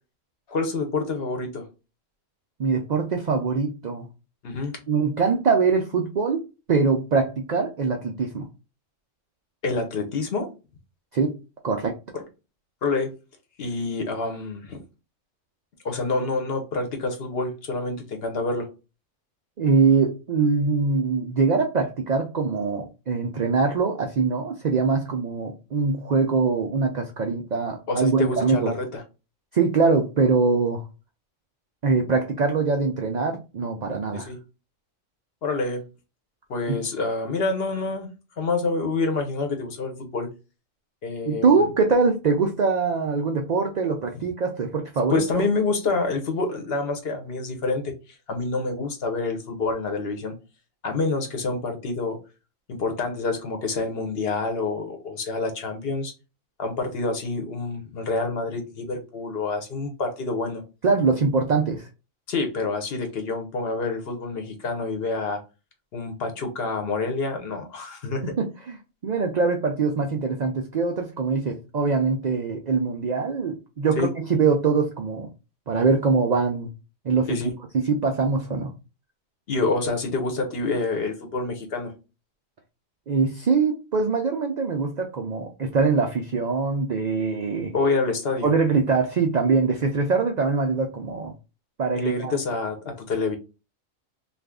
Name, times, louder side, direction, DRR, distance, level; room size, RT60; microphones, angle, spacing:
voice 1, 0.5-1.7 4.4-4.8 9.6-10.5 12.1-12.2 12.8-13.1 13.6-14.8 15.8-18.7 27.9-29.0 34.1-34.4 35.4-35.8 36.5-38.1 38.4-40.3 41.0-41.6 44.1-44.3 45.1-50.4 50.8-52.2 52.7-56.1 56.6-60.6 62.3-65.4 65.9-68.2 74.0-74.1 77.3-77.5 79.5-81.9 87.7-88.5 91.9-93.4, left 3 dB, 55° left, 0.9 m, -27 dB
voice 2, 2.6-4.1 4.9-8.5 11.1-11.3 11.6-12.0 19.6-28.7 29.5-30.8 31.8-34.3 36.7-36.8 41.3-45.4 60.8-61.9 68.2-68.8 69.0-75.3 75.7-76.7 77.0-77.3 77.7-78.7 83.1-87.7 88.4-91.3 91.8-92.3, right 4 dB, 85° right, 0.3 m, -23 dB
2.6 x 2.4 x 3.4 m
omnidirectional pair, 1.3 m